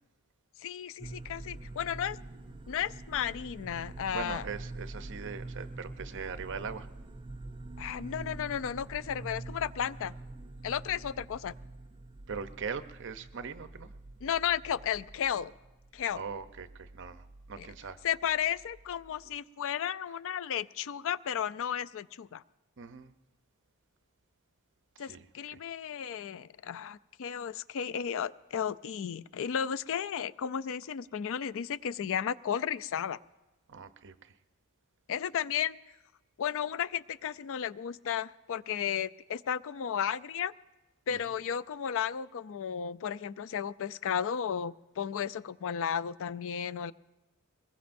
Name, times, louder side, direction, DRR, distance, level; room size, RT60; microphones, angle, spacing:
voice 1, 0.6-2.2 2.7-4.5 7.8-10.1 10.6-11.5 14.2-15.5 15.9-16.2 17.6-17.7 18.0-22.4 25.0-33.2 35.1-35.8 36.4-40.5 41.1-46.9, left 8 dB, 65° left, 17 dB, 0.4 m, -34 dB
sound 1, 1.0-19.4, right 2 dB, 20° right, 0.4 m, -46 dB
voice 2, 4.1-6.9 12.3-13.9 16.2-17.2 17.5-18.0 22.8-23.1 25.1-25.2 25.5-25.6 33.7-34.1, right 5 dB, 55° right, 10 dB, 0.7 m, -40 dB
23.0 x 21.0 x 2.6 m, 1.1 s
head